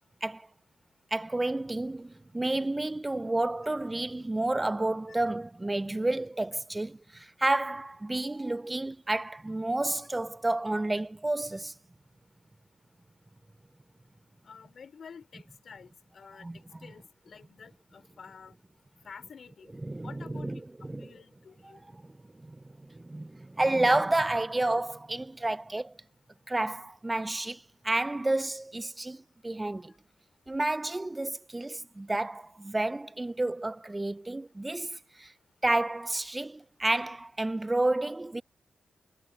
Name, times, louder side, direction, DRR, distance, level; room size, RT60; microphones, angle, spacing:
voice 1, 1.1-11.7 16.4-16.9 19.8-21.1 21.6-26.0 26.5-29.9 30.5-35.3 35.6-38.4, right 2 dB, 20° right, 0.4 m, -30 dB
voice 2, 14.4-18.5 19.0-21.8, left 6 dB, 60° left, 3.6 m, -50 dB
supercardioid pair, 45°, 0 cm